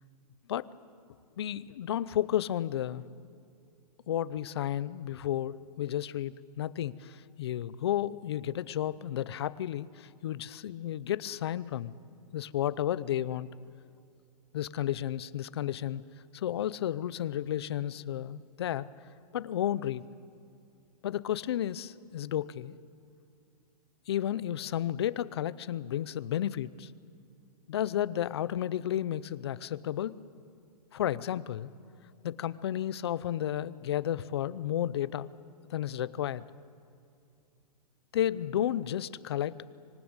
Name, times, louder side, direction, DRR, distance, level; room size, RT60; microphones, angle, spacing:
voice 1, 1.4-3.0 4.1-11.9 12.3-13.5 14.5-16.0 16.3-18.9 19.3-20.0 21.0-22.7 24.1-26.9 27.7-30.2 30.9-31.7 32.2-35.3 35.7-36.4 38.1-39.6, left 11 dB, 40° left, 18 dB, 0.6 m, -32 dB
25.5 x 19.0 x 8.8 m, 2.4 s
hypercardioid pair, 175°, 21 cm